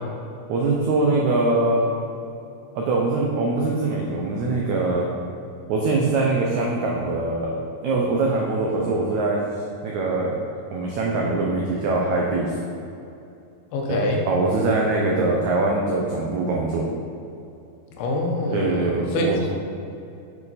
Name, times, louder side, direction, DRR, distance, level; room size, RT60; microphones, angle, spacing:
voice 1, 0.5-1.8 2.7-5.1 5.7-9.4 9.8-10.4 10.7-12.5 13.9-14.0 14.2-16.9 18.5-19.4, right 3 dB, 85° right, -2 dB, 1.6 m, -23 dB
voice 2, 13.7-14.2 18.0-18.8 19.1-19.5, left 1 dB, 80° left, 1 dB, 3.0 m, -24 dB
7.6 x 7.2 x 4.1 m, 2.7 s
omnidirectional pair, 4.5 m